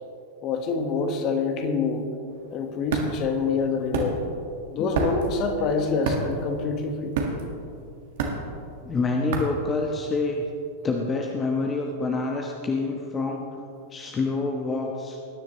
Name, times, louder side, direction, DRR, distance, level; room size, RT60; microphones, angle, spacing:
voice 1, 0.4-2.1 2.5-4.2 4.7-7.2, left 4 dB, 35° left, 5 dB, 1.5 m, -26 dB
sound 1, 2.3-10.4, right 3 dB, 55° right, 1.7 m, -30 dB
voice 2, 8.8-10.5 10.8-13.4 13.9-15.2, left 3 dB, 20° left, 1 dB, 1.1 m, -27 dB
20.5 x 10.5 x 3.2 m, 2.5 s
figure-of-eight pair, 90°, 0 cm